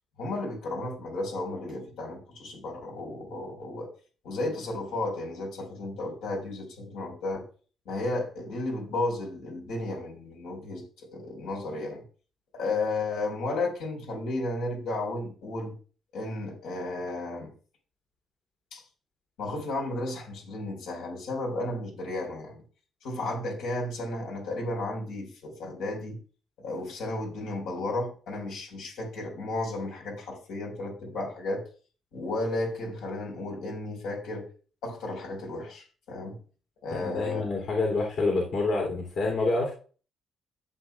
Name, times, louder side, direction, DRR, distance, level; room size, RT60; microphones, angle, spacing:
voice 1, 0.2-3.9 4.2-7.4 7.8-12.0 12.5-15.7 16.1-17.5 18.7-18.8 19.4-22.6 23.0-26.2 26.6-31.6 32.1-34.4 34.8-36.4 36.8-37.4 37.8-37.9, left 2 dB, 90° left, 1 dB, 4.4 m, -33 dB
voice 2, 37.0-39.7, left 3 dB, 70° left, -1 dB, 3.0 m, -27 dB
14.5 x 7.6 x 2.3 m, 0.38 s
cardioid pair, 90°, 0 cm